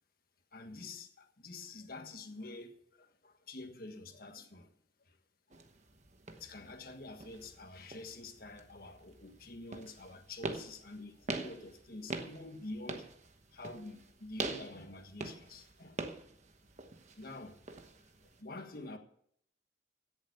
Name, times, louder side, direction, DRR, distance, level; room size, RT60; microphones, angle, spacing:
voice 1, 0.5-4.7 5.1-5.2 6.3-13.1 13.5-16.2 17.2-17.6 18.4-19.0, left 2 dB, 55° left, 1.6 m, -47 dB
sound 1, 5.5-18.4, right 3 dB, 40° right, 1.1 m, -45 dB
16.5 x 7.2 x 6.7 m
head